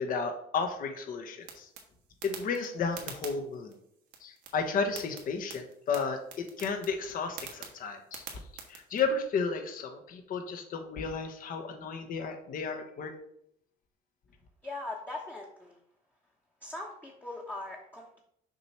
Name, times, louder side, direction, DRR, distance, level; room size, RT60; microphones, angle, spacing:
voice 1, 0.0-1.7 2.2-3.7 4.2-8.2 8.7-13.1, left 5 dB, 55° left, 5 dB, 1.1 m, -33 dB
sound 1, 1.4-9.0, right 6 dB, 90° right, 1.4 m, -48 dB
voice 2, 14.6-15.8 16.6-18.2, left 2 dB, 10° left, -3 dB, 1.0 m, -40 dB
6.6 x 3.1 x 5.7 m, 0.71 s
cardioid pair, 110°, 17 cm